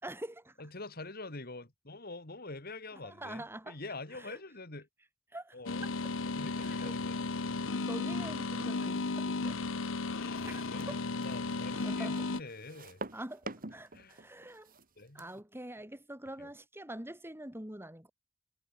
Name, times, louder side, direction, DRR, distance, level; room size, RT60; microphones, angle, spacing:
voice 1, 0.0-0.6 3.0-3.7 4.2-4.4 5.3-5.6 6.6-7.0 7.6-9.6 10.4-11.0 11.8-12.2 13.1-13.4 13.7-14.7 15.1-18.1, right 1 dB, 10° right, 4.0 m, -45 dB
voice 2, 0.6-4.9 5.5-5.9 6.2-7.6 10.0-13.0 13.9-14.2 15.0-15.4 16.4-16.5, left 3 dB, 50° left, 3.3 m, -46 dB
sound 1, 5.7-12.4, left 3 dB, 85° left, 1.0 m, -34 dB
sound 2, 10.2-15.4, right 2 dB, 45° right, 3.7 m, -47 dB
head